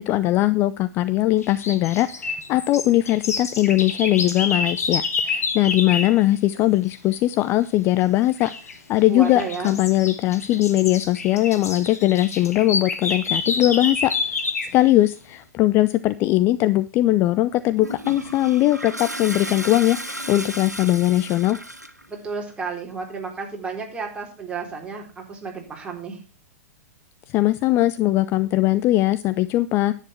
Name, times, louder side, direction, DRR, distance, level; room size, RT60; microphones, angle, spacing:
voice 1, 0.0-21.6 27.3-29.9, left 15 dB, 25° left, 14 dB, 0.5 m, -20 dB
sound 1, 1.4-6.2 8.4-8.8 9.2-14.8, left 4 dB, 65° left, 2.3 m, -28 dB
voice 2, 9.1-9.7 22.1-26.2, right 5 dB, 10° right, 0 dB, 4.1 m, -32 dB
Toilet flush, 17.8-22.1, right 1 dB, 90° right, 1.6 m, -34 dB
10.5 x 9.2 x 4.4 m, 0.34 s
figure-of-eight pair, 105°, 9 cm